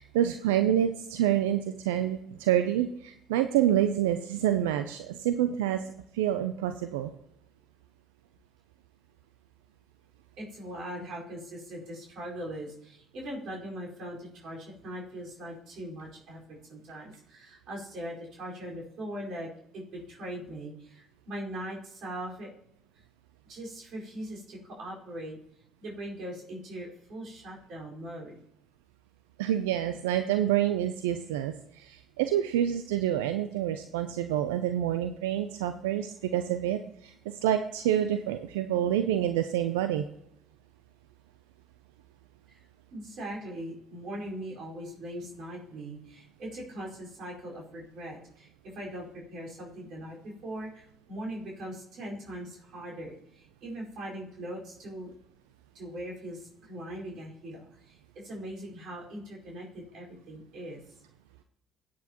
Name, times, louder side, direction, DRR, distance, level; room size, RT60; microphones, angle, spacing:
voice 1, 0.0-5.8 6.1-7.1 29.4-37.1 37.4-40.0, right 11 dB, 85° right, 9 dB, 0.5 m, -27 dB
voice 2, 10.4-22.5 23.4-25.4 25.8-28.3 42.5-42.6 42.9-55.1 55.7-60.8, right 1 dB, 65° right, -3 dB, 4.7 m, -40 dB
16.5 x 8.6 x 3.0 m, 0.74 s
hypercardioid pair, 55°, 0 cm